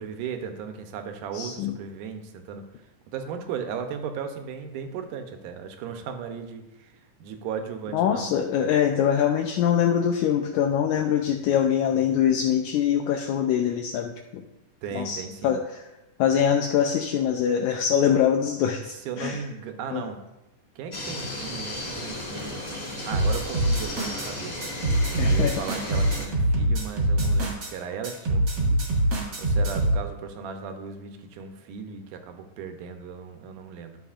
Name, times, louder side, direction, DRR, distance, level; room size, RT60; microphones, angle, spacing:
voice 1, 0.0-2.6 3.1-6.9 7.2-8.3 14.8-15.6 18.9-20.2 20.8-22.6 23.0-24.6 24.9-28.9 29.1-34.0, right 6 dB, 85° right, 6 dB, 2.3 m, -36 dB
voice 2, 1.3-1.7 7.9-14.4 14.9-15.8 16.2-19.4 19.9-20.0 25.2-25.6, left 9 dB, 80° left, 3 dB, 1.9 m, -23 dB
sound 1, 20.9-26.3, left 1 dB, 30° left, 0.7 m, -35 dB
sound 2, 23.1-24.3 24.6-27.7 28.0-30.0, right 1 dB, 40° right, 1.8 m, -24 dB
11.5 x 6.8 x 2.5 m, 0.96 s
omnidirectional pair, 3.6 m